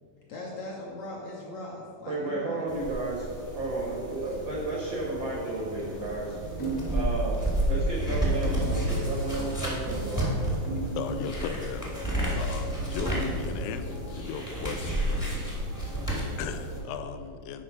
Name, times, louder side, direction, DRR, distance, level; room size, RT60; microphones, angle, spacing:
voice 1, 0.3-2.9 6.3-6.6 9.8-10.5, left 2 dB, 70° left, -3 dB, 1.7 m, -40 dB
voice 2, 2.1-6.4 6.9-7.4 7.7-10.2, right 2 dB, 85° right, -3 dB, 1.0 m, -32 dB
sound 1, 2.7-16.8, right 1 dB, 15° left, 0.5 m, -31 dB
sound 2, 6.6-7.0 7.5-7.7 8.4-8.8 9.6-9.9 10.6-11.6 13.0-13.5, right 2 dB, 50° left, 1.3 m, -36 dB
voice 3, 11.0-12.0 12.4-15.4 16.0-17.6, left 7 dB, 90° left, 9 dB, 2.3 m, -37 dB
10.0 x 4.5 x 5.7 m, 2.4 s
omnidirectional pair, 4.0 m